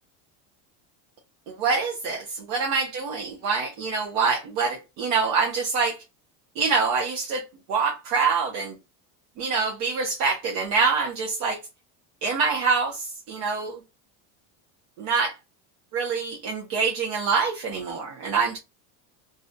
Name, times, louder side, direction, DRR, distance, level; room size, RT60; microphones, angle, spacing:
voice 1, 1.5-6.0 6.6-7.4 7.7-8.8 9.4-11.6 12.2-13.8 15.0-15.4 15.9-18.6, right 5 dB, 60° right, 0.6 m, -25 dB
2.5 x 2.1 x 2.5 m
cardioid pair, 165°, 38 cm